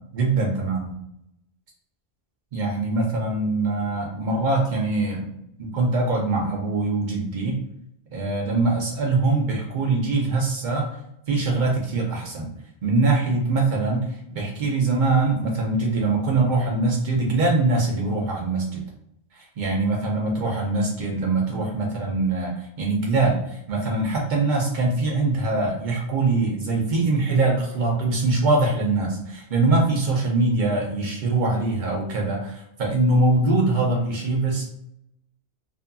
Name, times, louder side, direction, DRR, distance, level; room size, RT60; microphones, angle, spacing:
voice 1, 0.1-0.9 2.5-5.3 5.6-7.5 8.1-10.8 11.3-12.5 12.8-14.0 14.3-18.8 19.6-34.6, right 3 dB, 50° right, -1 dB, 0.8 m, -23 dB
2.6 x 2.6 x 2.3 m, 0.79 s
omnidirectional pair, 1.1 m